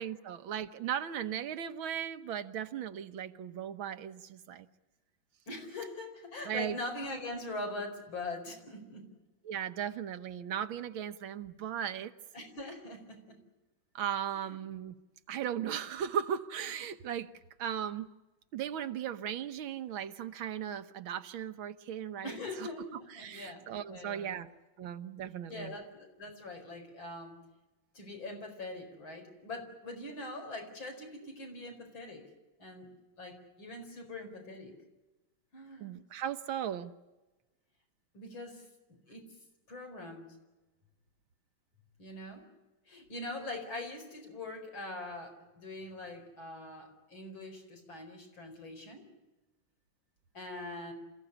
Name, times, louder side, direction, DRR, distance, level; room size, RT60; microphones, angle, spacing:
voice 1, 0.0-4.7 6.5-6.8 9.5-12.1 14.0-15.0 15.3-17.3 17.6-18.1 18.5-22.3 23.2-24.5 24.8-25.8 35.8-36.9, right 9 dB, 80° right, 10 dB, 1.8 m, -37 dB
voice 2, 5.5-9.1 12.3-13.4 14.3-14.6 22.2-24.4 25.5-27.4 27.9-32.3 32.6-32.9 33.2-34.7 35.5-36.0 38.1-38.7 39.1-39.3 39.7-40.4 42.0-42.4 42.9-49.1 50.3-50.9, left 2 dB, 75° left, 4 dB, 5.5 m, -42 dB
27.5 x 15.5 x 9.9 m, 1.1 s
omnidirectional pair, 2.2 m